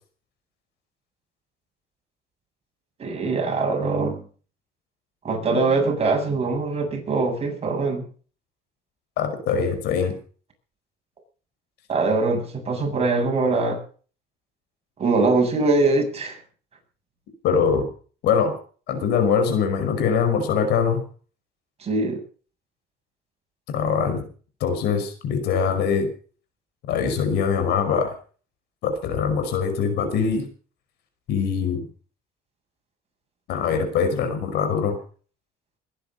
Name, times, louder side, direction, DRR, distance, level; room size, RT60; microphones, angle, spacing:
voice 1, 3.0-4.2 5.2-8.0 11.9-13.8 15.0-16.4 21.8-22.2, right 3 dB, 35° right, 2 dB, 7.9 m, -22 dB
voice 2, 9.2-10.2 17.4-17.9 18.2-18.6 18.9-21.0 23.7-24.3 24.6-26.1 26.9-28.1 28.8-30.4 31.3-31.9 33.5-35.0, left 6 dB, 80° left, 8 dB, 5.3 m, -22 dB
21.5 x 11.0 x 5.5 m, 0.41 s
cardioid pair, 110°, 17 cm